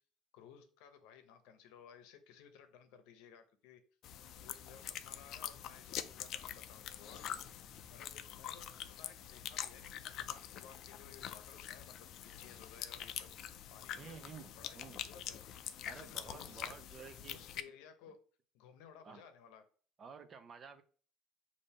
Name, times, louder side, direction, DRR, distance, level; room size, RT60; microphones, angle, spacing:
voice 1, 0.3-3.8 4.3-7.3 7.5-13.3 13.7-14.2 14.5-15.4 15.8-16.7 17.3-18.2 18.5-19.6, left 7 dB, 85° left, 0.7 m, -58 dB
sound 1, 4.0-17.6, left 10 dB, 50° left, 0.3 m, -45 dB
voice 2, 14.0-15.0 15.9-17.4 19.0-19.2 20.0-20.8, right 6 dB, 30° right, 0.4 m, -52 dB
5.4 x 2.6 x 3.5 m
cardioid pair, 150°, 0 cm